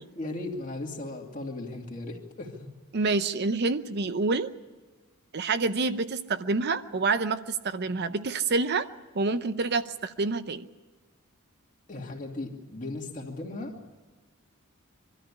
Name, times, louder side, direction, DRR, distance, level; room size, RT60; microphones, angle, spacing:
voice 1, 0.1-2.7 11.9-13.8, left 2 dB, 35° left, 1 dB, 2.6 m, -37 dB
voice 2, 2.9-4.5 5.3-8.9 9.1-10.7, right 3 dB, 50° right, 11 dB, 0.6 m, -27 dB
23.5 x 13.0 x 9.9 m, 1.3 s
head